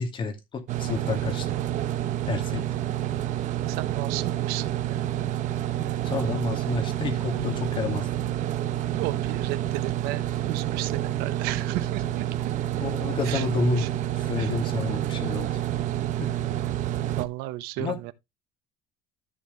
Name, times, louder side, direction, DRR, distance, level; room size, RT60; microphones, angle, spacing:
voice 1, 0.0-1.5 2.3-2.6 6.0-8.1 12.8-13.8 14.2-15.5 16.2-16.3 17.8-18.0, left 4 dB, 30° left, 2.5 m, -29 dB
sound 1, 0.7-17.3, right 12 dB, 50° right, 1.0 m, -28 dB
voice 2, 3.7-5.0 8.9-12.2 13.2-13.5 13.8-13.9 14.4-14.5 17.2-18.1, right 17 dB, 90° right, 1.1 m, -34 dB
13.5 x 4.8 x 3.4 m
cardioid pair, 155°, 16 cm